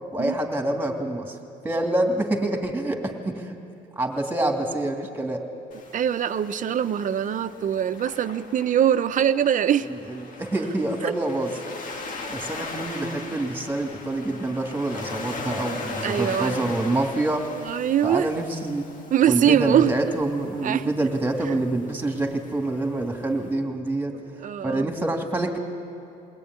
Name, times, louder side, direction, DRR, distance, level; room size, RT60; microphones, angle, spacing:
voice 1, 0.1-1.4 1.6-3.5 4.0-5.5 9.9-11.5 12.3-17.5 18.0-18.9 19.3-24.1 24.6-25.6, right 2 dB, 10° right, 3 dB, 2.8 m, -26 dB
Waves surf, 5.7-23.5, left 3 dB, 50° left, 2.3 m, -39 dB
voice 2, 5.9-9.9 11.0-11.1 13.1-13.4 16.0-16.7 17.5-18.3 19.1-19.9 20.6-20.9 24.1-24.9, right 9 dB, 50° right, 11 dB, 1.0 m, -23 dB
22.5 x 18.0 x 9.8 m, 2.9 s
cardioid pair, 110°, 17 cm